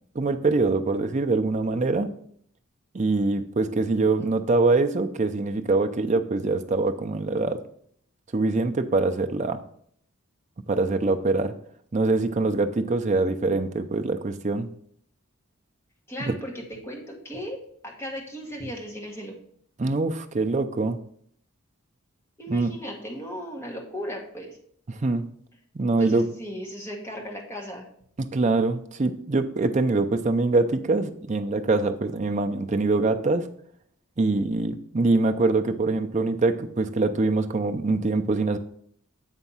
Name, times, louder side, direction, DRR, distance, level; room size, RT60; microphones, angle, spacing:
voice 1, 0.1-2.1 2.9-7.6 8.3-9.6 10.7-11.5 11.9-14.7 16.2-16.4 19.8-21.0 22.5-22.8 24.9-25.3 25.7-26.3 28.2-33.5 34.2-38.6, right 3 dB, 35° right, 7 dB, 0.5 m, -24 dB
voice 2, 16.1-19.4 22.4-24.6 26.0-27.9, equal, 10° left, -1 dB, 1.3 m, -36 dB
8.2 x 3.5 x 5.5 m, 0.63 s
head